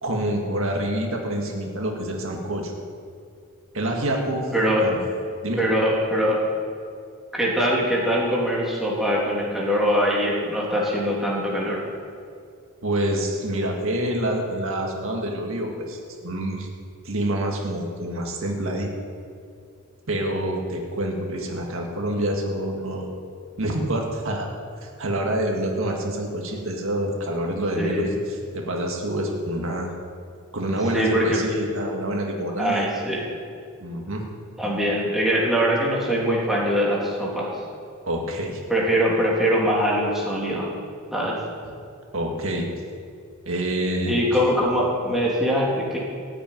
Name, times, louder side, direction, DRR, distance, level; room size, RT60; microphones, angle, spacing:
voice 1, 0.0-2.8 3.7-4.5 4.8-5.0 5.4-5.6 12.8-16.7 17.0-18.9 20.1-23.1 23.6-24.5 24.8-28.1 28.5-29.9 30.5-32.9 33.8-34.2 38.1-38.6 42.1-42.7 43.5-44.2, right 1 dB, 70° right, 1 dB, 1.9 m, -27 dB
voice 2, 5.6-6.4 7.3-11.8 27.8-28.1 30.9-31.4 32.6-33.2 34.6-37.5 38.7-40.7 41.1-41.4 44.1-46.0, equal, ahead, -5 dB, 3.1 m, -22 dB
15.5 x 6.9 x 9.3 m, 2.3 s
head